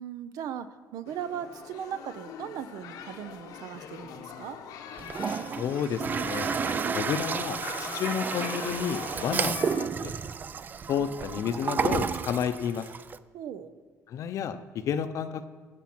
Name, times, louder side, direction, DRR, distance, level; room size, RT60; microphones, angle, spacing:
voice 1, 0.0-4.6 13.3-13.7, right 9 dB, 70° right, 12 dB, 0.7 m, -38 dB
sound 1, 1.0-9.9, left 8 dB, 80° left, 1.0 m, -42 dB
Toilet flush, 5.0-13.2, right 6 dB, 30° right, 0.4 m, -31 dB
voice 2, 5.6-6.5 6.9-9.6 10.0-10.1 10.9-12.9 14.1-15.5, left 8 dB, 55° left, 11 dB, 0.7 m, -31 dB
18.0 x 6.1 x 6.0 m, 1.5 s
cardioid pair, 140°, 6 cm